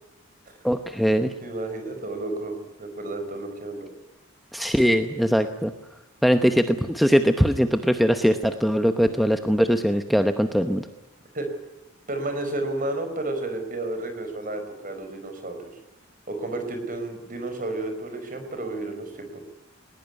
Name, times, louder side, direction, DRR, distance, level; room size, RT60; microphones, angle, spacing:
voice 1, 0.6-1.3 4.5-5.7 6.2-10.9, equal, ahead, 7 dB, 0.9 m, -21 dB
voice 2, 1.4-3.9 11.3-11.5 12.1-15.7 16.3-19.4, right 2 dB, 40° right, 6 dB, 5.0 m, -32 dB
20.5 x 20.0 x 9.5 m, 0.92 s
head